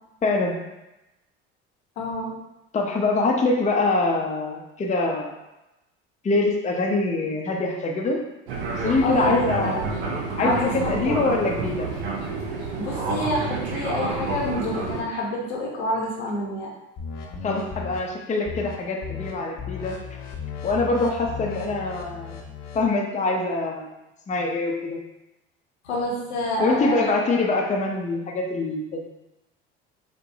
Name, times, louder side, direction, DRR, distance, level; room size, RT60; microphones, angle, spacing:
voice 1, 0.2-0.7 2.7-5.3 6.2-8.3 8.7-9.8 10.4-12.0 17.4-20.0 20.6-22.4 22.7-23.9 24.3-25.0 26.6-29.1, left 3 dB, 20° left, 1 dB, 0.6 m, -24 dB
voice 2, 2.0-2.3 9.0-9.4 9.7-9.8 10.4-11.2 12.8-16.7 25.8-27.1, left 1 dB, 85° left, -3 dB, 0.9 m, -27 dB
Fixed-wing aircraft airplane, 8.5-15.0, right 3 dB, 85° right, 0.6 m, -29 dB
sound 1, 17.0-18.0 18.5-18.8 19.0-19.3 19.6-22.9, left 6 dB, 55° left, 0.7 m, -35 dB
4.6 x 2.2 x 2.7 m, 0.95 s
hypercardioid pair, 65°, 32 cm